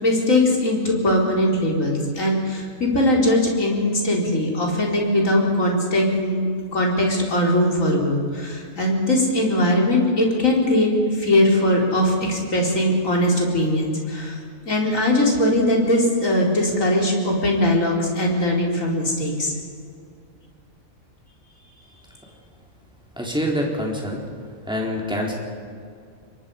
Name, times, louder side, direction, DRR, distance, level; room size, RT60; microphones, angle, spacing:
voice 1, 0.0-14.4 14.7-19.5, left 1 dB, 70° left, -1 dB, 4.4 m, -20 dB
voice 2, 23.2-24.2 24.7-25.4, equal, 5° right, -2 dB, 4.3 m, -25 dB
27.0 x 22.5 x 5.5 m, 2.2 s
omnidirectional pair, 1.4 m